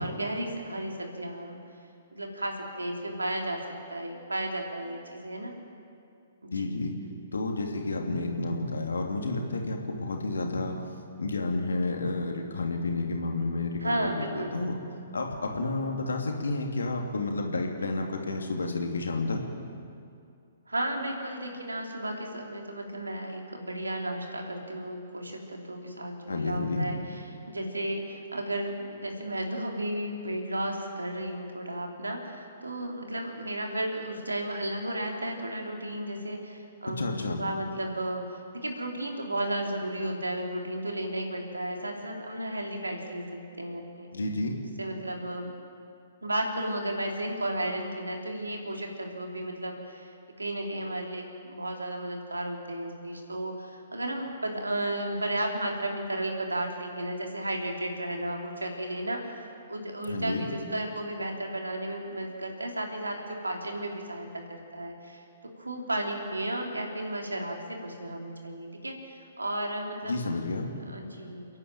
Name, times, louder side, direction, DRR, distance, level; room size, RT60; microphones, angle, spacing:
voice 1, 0.0-1.6 2.1-3.6 3.9-5.5 6.4-6.8 13.8-14.6 20.7-27.0 27.5-44.1 44.8-45.5 46.2-50.1 50.4-65.2 65.6-70.2 70.9-71.5, right 1 dB, 80° right, 1 dB, 3.4 m, -33 dB
voice 2, 6.5-7.0 7.3-10.8 11.2-14.8 15.1-19.4 26.3-26.9 36.9-37.4 44.1-44.6 60.0-60.5 70.1-70.7, left 2 dB, 70° left, 2 dB, 2.9 m, -30 dB
29.5 x 11.0 x 9.0 m, 2.4 s
figure-of-eight pair, 120°, 0 cm